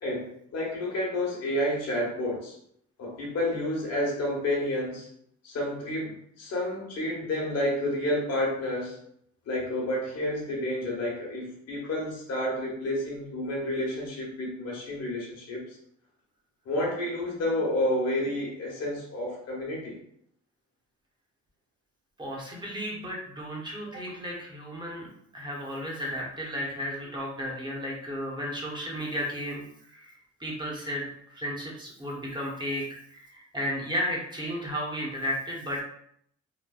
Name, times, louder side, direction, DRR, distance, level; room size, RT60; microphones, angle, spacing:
voice 1, 0.0-2.6 3.0-5.1 5.4-9.0 9.4-15.8 16.6-20.0, left 1 dB, 55° left, -3 dB, 1.0 m, -30 dB
voice 2, 22.2-25.1 25.3-35.8, equal, 15° right, -3 dB, 0.9 m, -34 dB
3.1 x 2.2 x 2.3 m, 0.69 s
cardioid pair, 90°, 30 cm